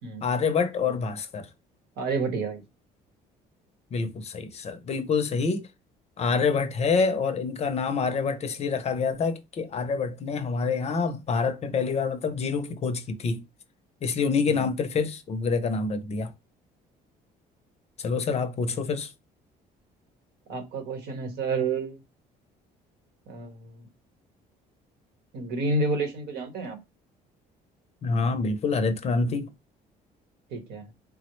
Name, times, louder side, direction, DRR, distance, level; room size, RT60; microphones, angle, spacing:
voice 1, 0.2-1.5 3.9-5.7 6.2-13.4 14.0-16.3 18.0-19.1 28.0-29.5, left 5 dB, 40° left, 0.5 m, -27 dB
voice 2, 2.0-2.6 6.2-6.4 14.5-14.7 20.5-22.0 23.3-23.8 25.3-26.8 30.5-30.9, right 3 dB, 75° right, 1.0 m, -30 dB
3.4 x 2.0 x 3.0 m
cardioid pair, 110°, 17 cm